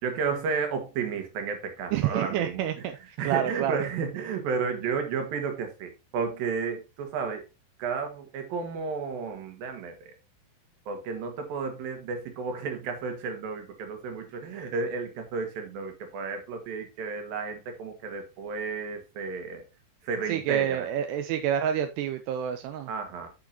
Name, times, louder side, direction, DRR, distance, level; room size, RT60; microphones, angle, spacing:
voice 1, 0.0-2.8 3.2-7.5 7.8-10.1 10.9-19.6 20.0-20.9 22.9-23.3, right 5 dB, 60° right, 3.2 m, -32 dB
voice 2, 1.9-3.8 20.3-22.9, right 10 dB, 80° right, 2.5 m, -28 dB
11.0 x 6.3 x 2.8 m
omnidirectional pair, 5.3 m